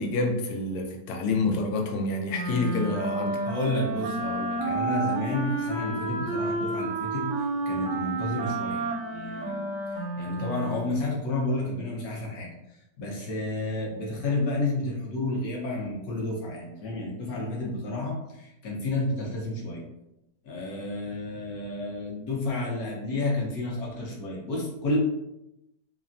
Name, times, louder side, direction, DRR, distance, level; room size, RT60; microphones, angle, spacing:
voice 1, 0.0-3.4, left 2 dB, 90° left, 2 dB, 1.3 m, -28 dB
Wind instrument woodwind instrument, 2.3-11.0, right 2 dB, 70° right, 0.9 m, -30 dB
voice 2, 3.4-9.6 9.9-12.5 13.0-19.8 20.4-25.0, left 2 dB, 65° left, -2 dB, 1.1 m, -31 dB
3.3 x 2.0 x 2.5 m, 0.87 s
omnidirectional pair, 1.9 m